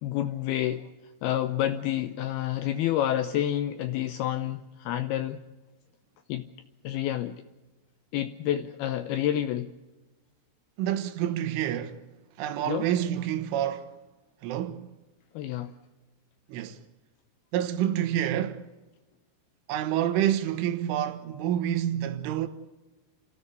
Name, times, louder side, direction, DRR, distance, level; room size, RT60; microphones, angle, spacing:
voice 1, 0.0-0.9 1.2-5.4 6.3-6.5 6.8-7.4 8.1-9.7 12.7-12.9 15.3-15.7, left 12 dB, 80° left, 2.3 m, -29 dB
voice 2, 10.8-12.1 12.4-14.0 14.4-14.9 16.5-16.8 17.5-18.7 19.7-22.5, right 11 dB, 90° right, 3.8 m, -28 dB
30.0 x 14.5 x 8.3 m
omnidirectional pair, 5.4 m